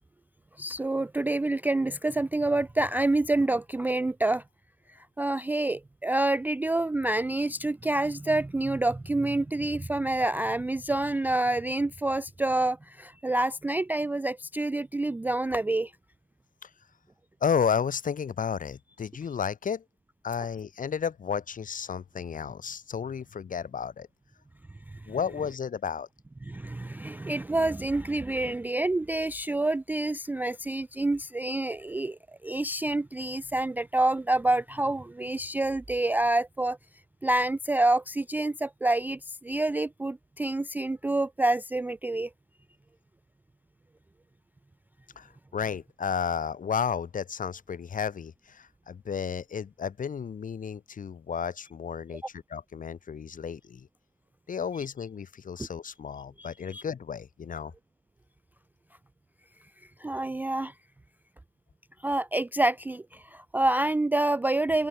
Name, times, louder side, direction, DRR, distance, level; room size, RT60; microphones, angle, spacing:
voice 1, 0.6-4.4 5.2-15.9 26.5-36.8 37.2-42.3 56.4-56.8 60.0-60.7 62.0-64.9, right 2 dB, 10° right, 0.3 m, -27 dB
voice 2, 17.4-19.8 20.2-24.1 25.1-26.1 45.2-52.2 52.5-53.9 54.5-57.7, left 7 dB, 40° left, 1.5 m, -32 dB
open air
cardioid pair, 90°, 20 cm